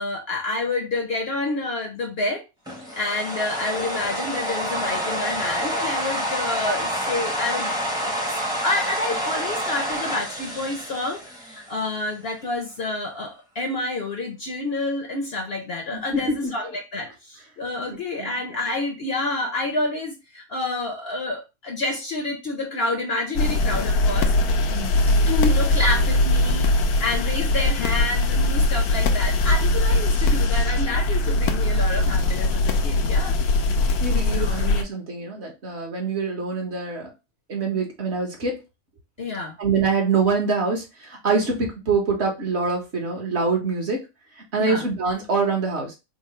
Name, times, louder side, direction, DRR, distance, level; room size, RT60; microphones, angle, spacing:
voice 1, 0.0-2.4 3.0-7.8 8.0-8.4 8.6-24.3 25.2-26.7 27.0-33.4 34.3-34.6 39.2-39.6 44.5-44.8, left 2 dB, 55° left, 2 dB, 0.8 m, -28 dB
sound 1, 2.7-11.9, equal, 5° right, 0.7 m, -28 dB
voice 2, 16.1-16.5 18.2-18.4 24.7-25.0 33.0-33.1 34.0-37.1 37.5-38.6 39.6-44.0 44.5-46.0, right 4 dB, 50° right, 0 dB, 1.3 m, -25 dB
sound 2, 23.4-34.8, left 2 dB, 90° left, 1.1 m, -21 dB
3.7 x 2.2 x 4.2 m, 0.25 s
omnidirectional pair, 1.5 m